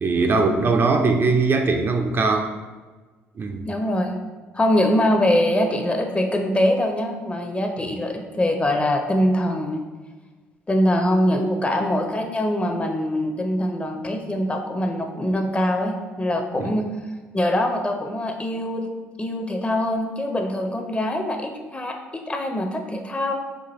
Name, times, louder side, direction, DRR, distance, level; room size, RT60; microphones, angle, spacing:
voice 1, 0.0-2.5 3.4-3.7 16.6-16.7, right 3 dB, 35° right, 4 dB, 0.4 m, -20 dB
voice 2, 3.7-4.2 4.5-9.8 10.7-16.9 17.3-18.9 19.2-23.3, left 1 dB, 20° left, 4 dB, 0.5 m, -23 dB
4.5 x 2.3 x 3.0 m, 1.3 s
hypercardioid pair, 55°, 6 cm